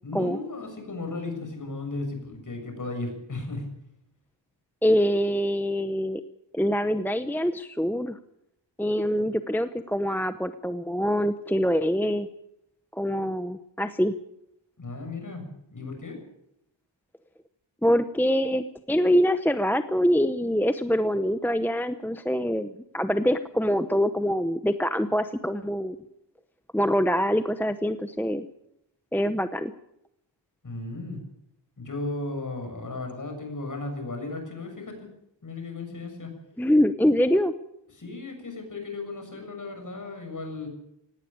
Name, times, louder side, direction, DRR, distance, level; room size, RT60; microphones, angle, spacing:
voice 1, 0.0-3.7 14.8-16.2 30.6-31.2 31.8-35.1 35.4-36.3 37.9-40.7, left 2 dB, 40° left, 4 dB, 6.8 m, -35 dB
voice 2, 4.8-6.2 6.5-8.2 8.8-12.3 13.0-14.1 17.8-26.0 26.7-28.5 29.1-29.7 36.6-37.5, equal, 5° left, 10 dB, 0.8 m, -24 dB
17.5 x 17.5 x 8.7 m, 0.79 s
wide cardioid pair, 125°, 45 cm